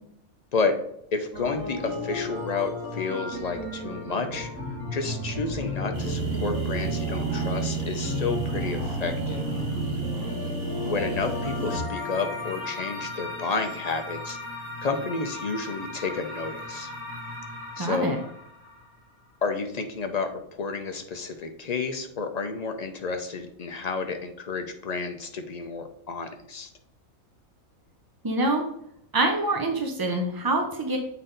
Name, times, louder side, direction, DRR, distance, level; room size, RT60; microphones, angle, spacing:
voice 1, 1.1-4.5 4.9-9.5 10.9-14.4 14.8-16.9 17.8-18.2 19.4-26.7, left 4 dB, 65° left, 6 dB, 0.4 m, -31 dB
sound 1, 1.3-19.0, left 2 dB, 80° right, 2.7 m, -35 dB
sound 2, 5.9-11.8, right 4 dB, 50° right, 1.3 m, -31 dB
voice 2, 17.8-18.2 28.2-28.6 29.1-31.0, right 2 dB, 30° right, 3 dB, 0.4 m, -25 dB
8.1 x 4.2 x 3.9 m, 0.74 s
omnidirectional pair, 1.5 m